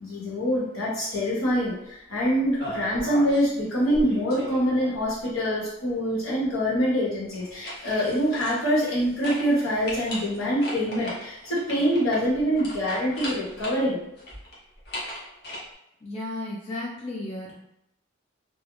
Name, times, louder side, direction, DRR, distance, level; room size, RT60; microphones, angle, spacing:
voice 1, 0.0-14.0, equal, 90° left, -6 dB, 1.0 m, -25 dB
sound 1, 2.6-3.5 3.8-5.2 7.3-9.0 9.2-9.5 9.8-13.8 14.2-15.6, equal, 50° left, 0.7 m, -37 dB
voice 2, 16.0-17.6, left 2 dB, 30° left, -4 dB, 0.3 m, -34 dB
2.3 x 2.0 x 3.0 m, 0.79 s
head